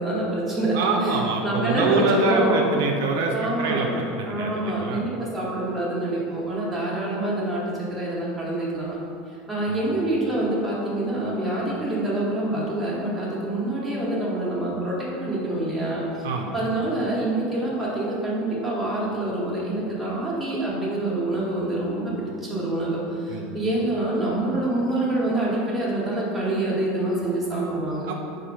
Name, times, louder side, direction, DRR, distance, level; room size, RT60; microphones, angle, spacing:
voice 1, 0.0-2.7 3.3-3.9 4.2-9.0 9.5-16.3 16.5-28.1, right 1 dB, 10° right, -7 dB, 1.1 m, -26 dB
voice 2, 0.7-5.0 9.7-9.9 16.2-16.5 23.3-23.5 28.1-28.2, right 3 dB, 80° right, 1 dB, 0.5 m, -25 dB
4.2 x 2.5 x 4.8 m, 2.6 s
supercardioid pair, 130°, 0 cm